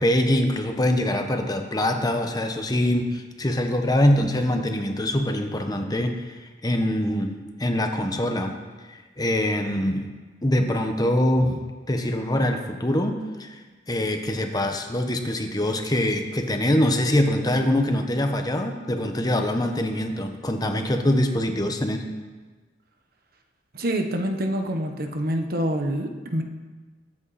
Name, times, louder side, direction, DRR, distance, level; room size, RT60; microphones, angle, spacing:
voice 1, 0.0-8.6 8.9-10.1 10.4-13.6 13.9-22.1, left 1 dB, 20° left, 5 dB, 1.0 m, -24 dB
voice 2, 23.7-26.4, equal, 55° right, 5 dB, 1.2 m, -26 dB
21.5 x 8.5 x 4.2 m, 1.3 s
head